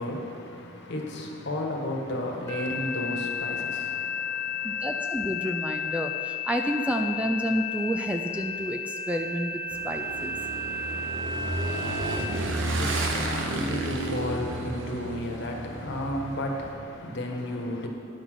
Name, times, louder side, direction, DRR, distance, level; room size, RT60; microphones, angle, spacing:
voice 1, 0.0-5.0 11.7-17.9, left 1 dB, 60° left, 1.3 m, -34 dB
sound 1, 2.5-12.2, left 5 dB, 15° left, 1.9 m, -33 dB
voice 2, 4.6-10.4, equal, 5° right, 0.4 m, -30 dB
Motorcycle / Engine, 9.7-16.7, right 2 dB, 70° right, 1.0 m, -32 dB
10.0 x 6.0 x 6.3 m
head